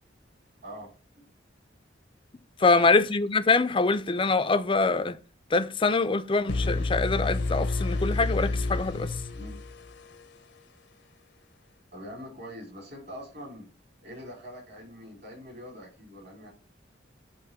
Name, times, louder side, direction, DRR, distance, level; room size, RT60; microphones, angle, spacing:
voice 1, 2.6-5.2 5.5-9.1, left 3 dB, 25° left, 0.5 m, -24 dB
sound 1, 6.5-10.4, left 2 dB, 60° left, 0.7 m, -29 dB
voice 2, 11.9-13.7 14.0-16.5, equal, 60° right, 3.9 m, -43 dB
8.5 x 3.1 x 5.7 m
head